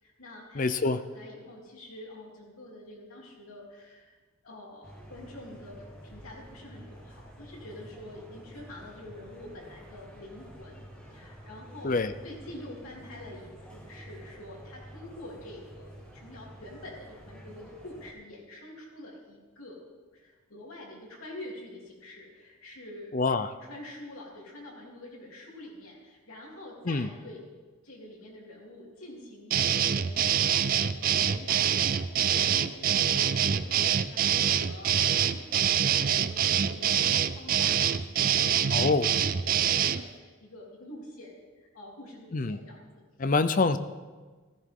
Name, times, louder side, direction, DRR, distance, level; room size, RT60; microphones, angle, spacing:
voice 1, 0.0-4.2 4.4-10.8 11.1-12.0 12.2-19.8 20.1-23.3 23.6-27.4 27.8-42.9 43.2-43.3, left 1 dB, 90° left, -3 dB, 3.4 m, -47 dB
voice 2, 0.6-1.0 11.8-12.1 23.1-23.5 26.9-27.1 38.7-39.1 42.3-42.6 43.2-43.8, left 3 dB, 40° left, 12 dB, 0.5 m, -25 dB
sound 1, 4.8-18.1, equal, 5° left, 2.1 m, -49 dB
sound 2, 29.5-40.0, right 9 dB, 40° right, 0.4 m, -25 dB
15.0 x 15.0 x 3.8 m, 1.4 s
head